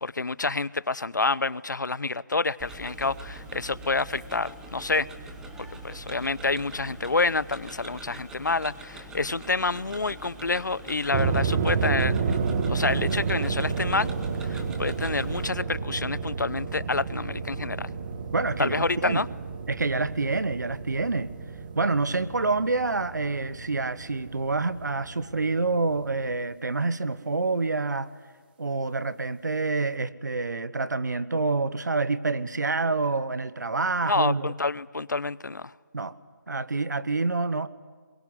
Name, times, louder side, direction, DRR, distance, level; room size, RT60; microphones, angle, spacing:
voice 1, 0.0-5.1 5.6-12.2 12.7-14.1 14.4-17.9 18.6-19.3 34.1-35.7, left 3 dB, 85° left, 20 dB, 0.7 m, -28 dB
Tick-tock, 2.6-15.5, right 1 dB, 5° right, 1.6 m, -43 dB
sound 1, 11.1-26.3, right 5 dB, 30° right, 1.7 m, -31 dB
voice 2, 18.3-19.3 19.7-21.3 21.7-28.1 28.6-34.5 35.9-36.1 36.5-37.7, right 3 dB, 75° right, 15 dB, 1.2 m, -27 dB
23.0 x 22.0 x 9.8 m, 1.5 s
figure-of-eight pair, 155°, 10 cm